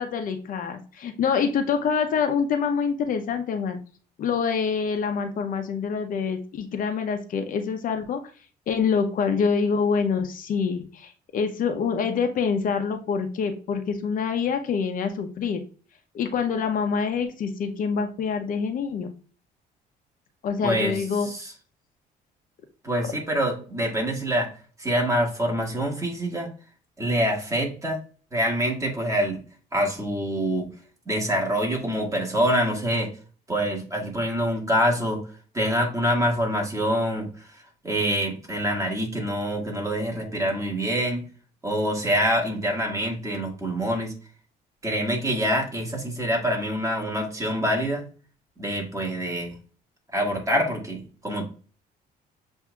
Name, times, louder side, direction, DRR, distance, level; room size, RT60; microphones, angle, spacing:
voice 1, 0.0-3.8 4.2-8.2 8.7-15.6 16.1-19.1 20.4-21.3, left 6 dB, 55° left, 6 dB, 0.7 m, -26 dB
voice 2, 20.6-21.5 22.8-24.5 24.8-26.5 27.0-28.0 28.3-29.4 29.7-30.7 31.0-33.1 33.5-35.2 35.5-37.3 37.8-41.2 41.6-44.1 44.8-48.0 48.6-49.5 50.1-51.5, equal, 20° right, 0 dB, 1.7 m, -25 dB
7.2 x 2.7 x 2.3 m, 0.38 s
cardioid pair, 110°, 17 cm